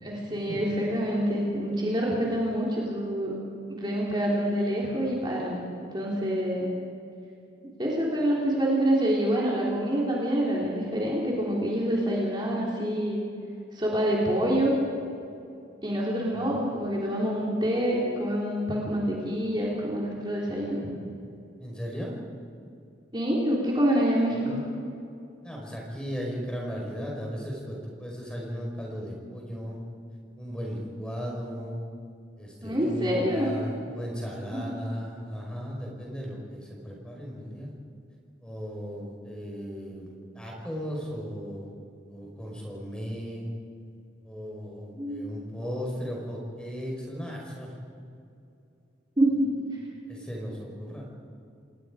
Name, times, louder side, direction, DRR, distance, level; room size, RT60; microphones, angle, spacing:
voice 1, 0.0-3.3 3.7-6.7 7.8-13.2 13.7-14.7 15.8-20.8 23.1-24.7 32.6-33.5 34.5-34.8 44.9-45.2 49.2-49.5, equal, 25° right, -4 dB, 3.6 m, -26 dB
voice 2, 21.6-22.2 24.3-24.6 25.4-29.8 30.4-31.8 32.4-37.7 38.4-41.7 42.1-43.5 44.2-47.8 49.8-51.1, equal, 5° left, -1 dB, 5.0 m, -36 dB
28.5 x 19.5 x 5.1 m, 2.6 s
head